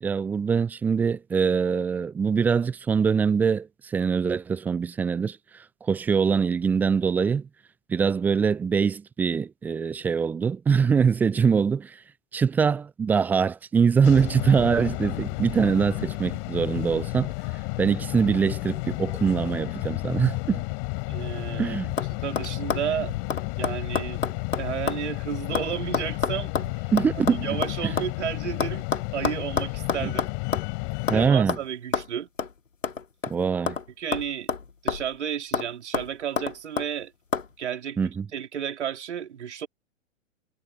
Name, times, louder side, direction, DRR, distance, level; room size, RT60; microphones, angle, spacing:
voice 1, 0.0-7.5 7.9-12.0 12.3-17.3 17.8-20.6 21.6-22.0 26.9-27.5 30.0-30.1 31.1-31.6 33.3-33.8 38.0-38.3, right 6 dB, 5° right, 0.4 m, -23 dB
sound 1, 14.0-31.3, left 39 dB, 40° left, 6.4 m, -32 dB
voice 2, 21.1-21.8 22.2-23.1 23.5-24.2 24.6-26.8 27.3-28.9 29.1-30.3 31.1-32.3 34.0-34.5 34.8-37.1 37.6-38.0 38.3-39.7, right 9 dB, 60° right, 3.7 m, -32 dB
sound 2, 21.2-21.6 22.0-22.1 22.4-25.1 25.3-28.1 28.6-30.7 31.1-31.2 31.5-31.6 31.9-32.1 32.4-32.5 32.8-33.9 34.1-35.2 35.5-35.7 35.9-36.9 37.3-37.5, left 6 dB, 75° left, 2.3 m, -29 dB
figure-of-eight pair, 110°, 38 cm